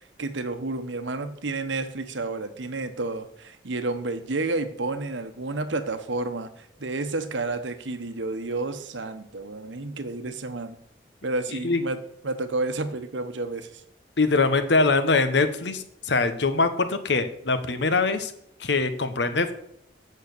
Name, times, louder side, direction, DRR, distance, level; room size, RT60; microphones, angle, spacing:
voice 1, 0.2-10.8 11.2-13.8, right 2 dB, 80° right, 10 dB, 1.0 m, -30 dB
voice 2, 14.2-18.3 18.6-19.5, left 3 dB, 70° left, 10 dB, 1.0 m, -23 dB
8.5 x 6.5 x 6.6 m, 0.75 s
head